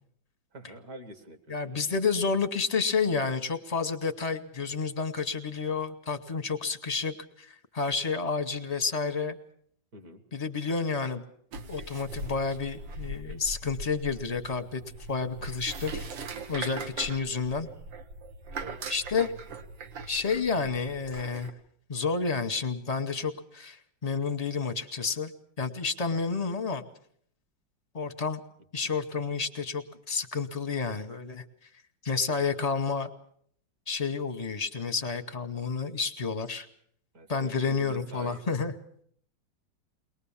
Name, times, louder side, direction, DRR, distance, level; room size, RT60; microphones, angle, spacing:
voice 1, 0.5-1.9 9.9-10.2 16.6-17.1 18.5-18.9 28.8-28.9 37.1-38.4, right 1 dB, 55° right, 8 dB, 2.2 m, -47 dB
voice 2, 1.5-9.4 10.3-11.2 11.7-14.8 15.1-16.1 16.5-17.7 18.9-19.3 20.1-21.5 21.9-25.3 25.6-26.9 27.9-28.4 28.7-31.4 32.0-33.1 33.9-36.7 37.3-38.7, left 5 dB, 35° left, 7 dB, 0.6 m, -30 dB
sound 1, 11.5-21.5, right 3 dB, 80° right, 1.8 m, -40 dB
22.0 x 19.5 x 7.1 m, 0.64 s
omnidirectional pair, 2.0 m